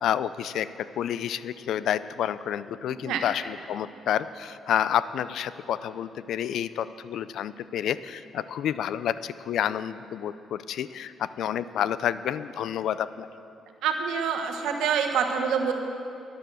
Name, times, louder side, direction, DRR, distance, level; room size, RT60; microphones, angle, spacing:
voice 1, 0.0-13.3, left 10 dB, 75° left, 15 dB, 0.4 m, -29 dB
voice 2, 13.8-15.7, right 6 dB, 85° right, 4 dB, 1.2 m, -26 dB
13.5 x 10.5 x 6.2 m, 2.7 s
cardioid pair, 90°, 0 cm